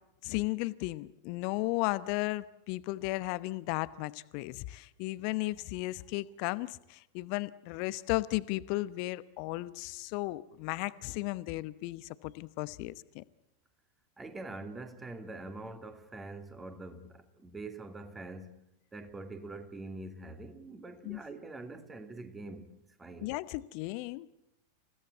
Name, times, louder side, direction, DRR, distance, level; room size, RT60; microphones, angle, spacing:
voice 1, 0.2-13.2 21.0-21.2 23.2-24.3, left 20 dB, 45° left, 0.9 m, -35 dB
voice 2, 14.2-23.3, right 2 dB, 15° right, 2.7 m, -45 dB
28.5 x 17.0 x 8.3 m
figure-of-eight pair, 90°, 0 cm